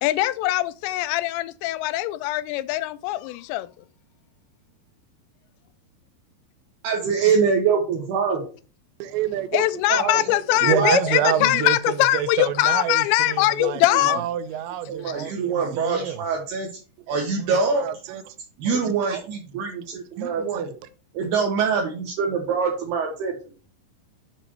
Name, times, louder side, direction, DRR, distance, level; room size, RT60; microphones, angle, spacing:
voice 1, 0.0-3.7 9.5-14.2, left 16 dB, 90° left, 2.8 m, -22 dB
voice 2, 6.8-8.5 9.9-10.3 10.6-11.0 11.4-11.6 13.6-14.0 14.9-16.7 17.1-18.2 18.6-20.7 21.1-23.5, right 5 dB, 70° right, 3.1 m, -24 dB
voice 3, 9.0-9.7 9.9-16.2 17.1-17.2 17.7-18.2 18.7-19.2 20.2-20.8, right 10 dB, 85° right, 2.9 m, -28 dB
7.4 x 6.8 x 4.4 m
omnidirectional pair, 5.0 m